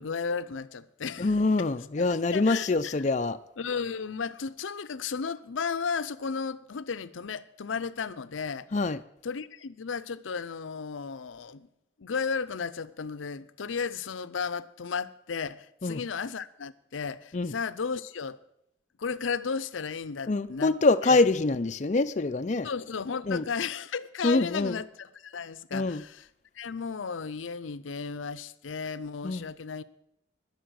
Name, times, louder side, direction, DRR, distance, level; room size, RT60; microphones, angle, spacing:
voice 1, 0.0-1.3 2.1-3.0 3.6-8.7 9.2-11.7 12.0-18.4 19.0-20.7 21.1-21.2 22.6-26.2 26.6-29.8, left 5 dB, 90° left, 0.6 m, -34 dB
voice 2, 1.2-3.4 8.7-9.0 15.8-16.0 17.3-17.5 20.3-22.7 23.3-23.4 24.2-24.8 25.7-26.0 29.2-29.5, left 3 dB, 40° left, 0.5 m, -25 dB
19.5 x 6.9 x 6.4 m
head